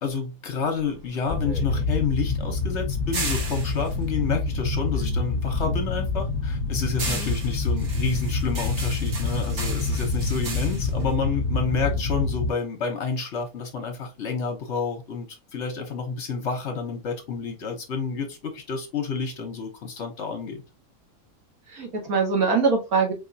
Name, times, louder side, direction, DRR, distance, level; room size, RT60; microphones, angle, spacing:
voice 1, 0.0-20.6, left 5 dB, 55° left, 1.0 m, -29 dB
sound 1, 0.8-5.3 5.6-12.1, right 3 dB, 55° right, 1.4 m, -36 dB
sound 2, 1.3-12.5, left 3 dB, 25° right, 1.5 m, -27 dB
voice 2, 21.7-23.1, right 4 dB, 75° right, 1.8 m, -24 dB
4.5 x 2.9 x 2.6 m
omnidirectional pair, 1.5 m